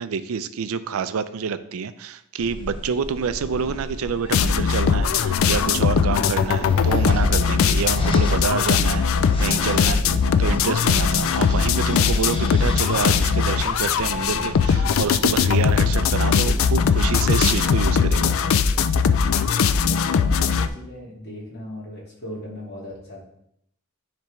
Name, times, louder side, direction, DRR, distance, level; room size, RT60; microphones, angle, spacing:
voice 1, 0.0-9.1 9.4-10.0 10.4-18.3, right 6 dB, 85° right, 13 dB, 0.4 m, -27 dB
sound 1, 2.4-17.6, left 1 dB, 25° left, 0.7 m, -33 dB
sound 2, 4.3-20.7, left 6 dB, 70° left, 0.3 m, -20 dB
voice 2, 9.6-10.8 18.0-19.3 19.8-23.2, equal, 50° left, -4 dB, 2.0 m, -39 dB
10.0 x 3.4 x 3.1 m, 0.75 s
head